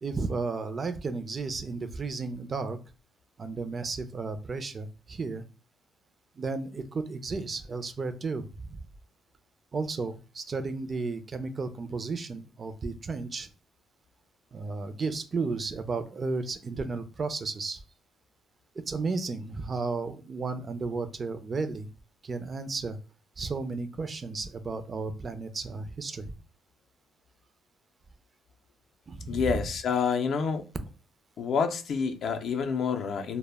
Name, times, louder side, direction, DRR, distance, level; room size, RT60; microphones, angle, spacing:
voice 1, 0.0-2.8 3.4-5.4 6.4-8.4 9.7-13.5 14.5-17.8 18.9-21.9 22.3-23.0 23.4-26.3 29.1-29.5, right 4 dB, 40° right, 0.4 m, -33 dB
voice 2, 29.3-30.7 31.4-33.4, left 6 dB, 65° left, 0.4 m, -28 dB
2.1 x 2.0 x 3.2 m
cardioid pair, 90°, 0 cm